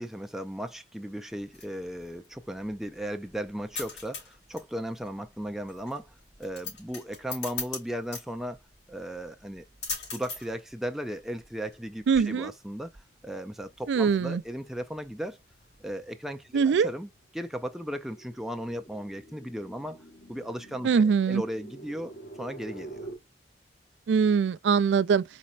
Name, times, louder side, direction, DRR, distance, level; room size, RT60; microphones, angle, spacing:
voice 1, 0.0-8.6 8.9-9.6 10.1-15.4 15.8-20.0 20.3-23.1, equal, ahead, 0.4 m, -36 dB
sound 1, 1.3-16.1, left 4 dB, 85° left, 3.0 m, -43 dB
voice 2, 12.1-12.5 13.9-14.4 16.5-16.9 20.8-21.4 24.1-25.2, right 6 dB, 85° right, 0.3 m, -22 dB
sound 2, 13.7-13.8 14.2-23.1, right 2 dB, 50° left, 1.2 m, -48 dB
4.2 x 4.2 x 2.4 m
head